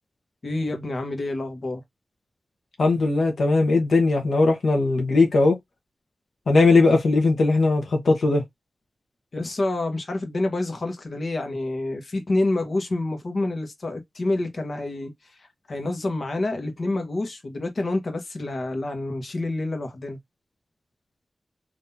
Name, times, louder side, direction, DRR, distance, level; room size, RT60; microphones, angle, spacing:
voice 1, 0.4-1.8 9.3-20.2, left 2 dB, 55° left, 1.2 m, -28 dB
voice 2, 2.8-5.6 6.5-8.4, left 3 dB, 85° left, 1.0 m, -19 dB
3.8 x 2.8 x 2.7 m
wide cardioid pair, 100°, 0 cm